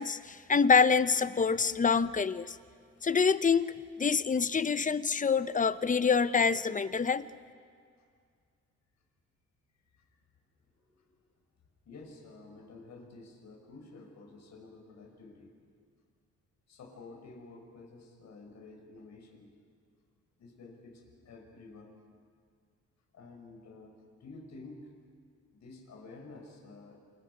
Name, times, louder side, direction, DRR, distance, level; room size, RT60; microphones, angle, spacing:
voice 1, 0.0-2.6 3.0-7.2, left 5 dB, 25° left, 14 dB, 0.8 m, -26 dB
voice 2, 10.8-11.1 11.9-15.5 16.7-19.5 20.4-22.0 23.1-24.9 25.5-27.0, left 3 dB, 65° left, 2 dB, 5.2 m, -51 dB
28.0 x 28.0 x 5.4 m, 2.1 s
cardioid pair, 90°, 30 cm